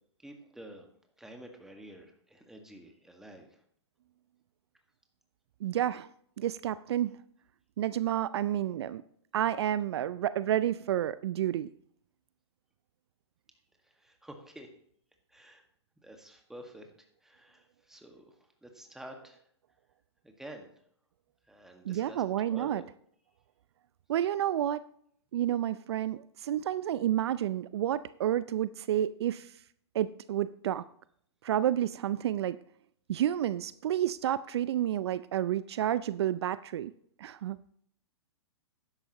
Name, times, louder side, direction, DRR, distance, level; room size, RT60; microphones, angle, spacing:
voice 1, 0.2-0.9 1.2-3.6 13.8-14.7 15.3-15.6 16.0-19.5 20.2-20.8 21.4-22.2 22.5-22.8, right 1 dB, 5° right, 3 dB, 1.7 m, -50 dB
voice 2, 5.6-6.1 6.4-7.1 7.8-9.0 9.3-11.7 21.8-22.8 24.1-24.8 25.3-29.6 29.9-30.9 31.4-32.6 33.1-36.9 37.2-37.6, right 11 dB, 65° right, 16 dB, 0.4 m, -30 dB
12.5 x 10.5 x 3.0 m, 0.65 s
hypercardioid pair, 120°, 15 cm